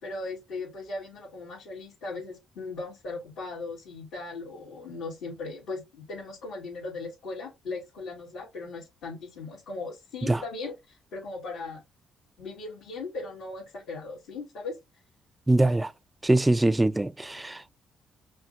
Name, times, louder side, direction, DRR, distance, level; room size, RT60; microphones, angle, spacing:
voice 1, 0.0-11.8 12.4-14.8, left 3 dB, 85° left, 2.4 m, -38 dB
voice 2, 15.5-15.9 16.2-17.7, right 2 dB, 15° right, 0.4 m, -23 dB
5.5 x 2.7 x 2.5 m
cardioid pair, 90°, 0 cm